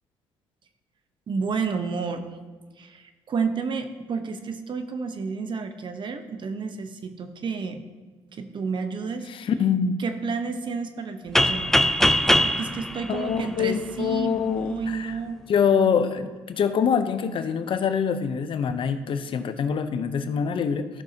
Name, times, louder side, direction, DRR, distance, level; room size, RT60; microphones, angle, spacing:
voice 1, 1.3-2.3 2.8-7.8 8.3-9.3 10.0-11.8 12.4-15.4, right 5 dB, 50° right, 8 dB, 1.0 m, -31 dB
voice 2, 9.3-10.0 13.1-15.2 15.5-20.9, left 7 dB, 55° left, 10 dB, 0.7 m, -25 dB
sound 1, 11.4-14.1, left 1 dB, 5° left, 0.5 m, -22 dB
14.0 x 6.2 x 2.8 m, 1.4 s
supercardioid pair, 70°, 10 cm